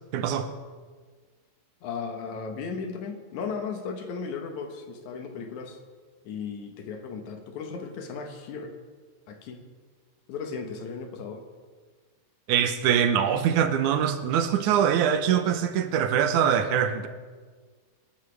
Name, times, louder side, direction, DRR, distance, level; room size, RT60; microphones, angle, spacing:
voice 1, 0.1-0.5 12.5-17.1, right 8 dB, 85° right, 2.3 m, -23 dB
voice 2, 1.8-5.8 6.2-8.8 9.3-9.6 10.3-11.4, left 5 dB, 75° left, 2.6 m, -36 dB
24.0 x 11.5 x 3.4 m
omnidirectional pair, 3.4 m